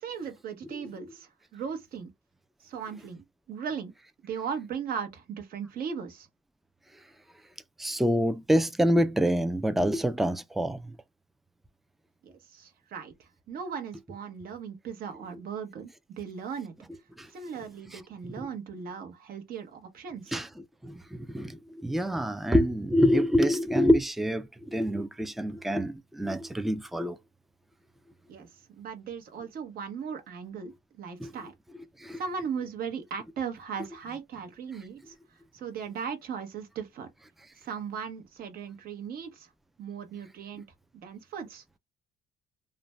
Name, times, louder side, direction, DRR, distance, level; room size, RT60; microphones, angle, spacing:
voice 1, 0.0-2.1 2.6-3.9 4.2-6.3 12.2-15.9 16.2-16.7 17.3-20.4 28.3-28.5 28.8-31.5 32.2-35.1 35.5-37.1 37.6-39.5 39.8-40.6 40.9-41.6, right 6 dB, 60° right, 0.9 m, -38 dB
voice 2, 7.8-10.9 17.2-17.3 18.4-18.5 20.3-20.5 20.8-27.2 31.2-31.3 32.0-32.2, equal, ahead, 0.3 m, -26 dB
2.5 x 2.1 x 3.1 m
cardioid pair, 110°, 17 cm